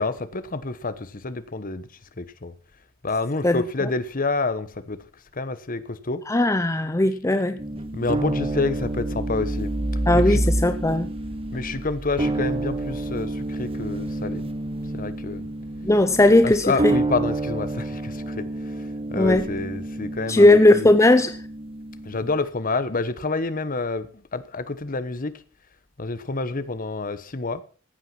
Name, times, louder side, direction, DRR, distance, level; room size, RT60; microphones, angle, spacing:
voice 1, 0.0-1.9 2.2-2.5 3.0-5.0 5.3-6.2 7.9-9.7 10.1-10.4 11.5-14.4 14.9-15.5 16.4-20.9 22.0-25.3 26.0-27.6, left 3 dB, 40° left, 1.1 m, -28 dB
voice 2, 6.3-7.6 10.1-11.1 15.8-16.9 19.1-19.5 20.3-21.4, left 2 dB, 15° left, 0.7 m, -17 dB
sound 1, 7.6-22.4, right 1 dB, 25° right, 1.0 m, -29 dB
15.0 x 9.0 x 6.0 m
head